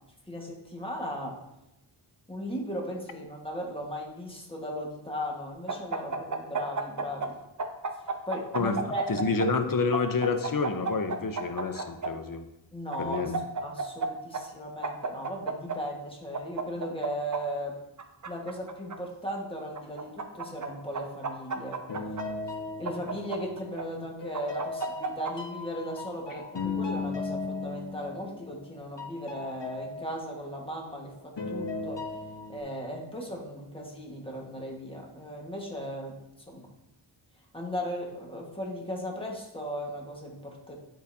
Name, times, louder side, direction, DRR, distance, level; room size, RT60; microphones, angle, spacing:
voice 1, 0.3-1.4 2.3-7.4 8.3-9.0 12.7-13.3 13.6-17.8 18.2-21.8 22.8-32.0 32.5-36.2 36.5-36.7 37.5-40.8, equal, 10° left, -1 dB, 1.5 m, -37 dB
sound 1, 5.7-7.3 7.6-9.5 9.9-12.1 12.9-14.1 14.3-14.4 14.8-15.8 16.3-17.4 18.0-19.0 19.8-20.7 20.9-22.2 22.9-23.8 24.3-25.3, right 4 dB, 40° right, 0.6 m, -32 dB
voice 2, 9.1-12.4 13.0-13.4, left 4 dB, 45° left, 7 dB, 0.7 m, -28 dB
sound 2, 21.9-23.8 24.2-28.7 29.0-30.9 31.4-32.6, left 3 dB, 60° left, 1.1 m, -37 dB
10.5 x 4.0 x 2.7 m, 0.91 s
wide cardioid pair, 85°, 48 cm